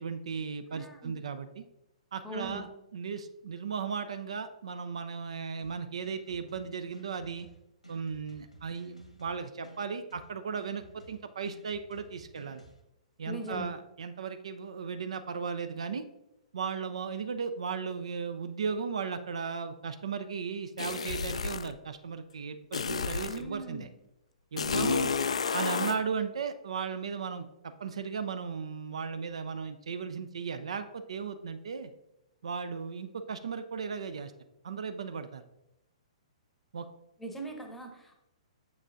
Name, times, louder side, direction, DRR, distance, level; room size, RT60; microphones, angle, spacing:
voice 1, 0.0-1.6 2.1-2.7 2.9-7.5 7.9-12.6 13.2-16.0 16.5-23.9 24.5-25.0 25.5-27.5 27.8-31.9 32.4-34.3 34.6-35.4 36.7-36.9, right 6 dB, 60° right, 10 dB, 0.4 m, -36 dB
voice 2, 0.7-1.2 2.2-2.7 13.3-13.7 23.3-23.9 24.7-25.1 37.2-38.1, right 1 dB, 5° left, 3 dB, 0.8 m, -40 dB
sound 1, 5.6-12.8, right 2 dB, 90° left, 1.6 m, -54 dB
sound 2, 20.8-21.7 22.7-23.4 24.6-26.0, left 5 dB, 65° left, 0.3 m, -31 dB
7.1 x 5.9 x 2.5 m, 0.90 s
figure-of-eight pair, 115°, 4 cm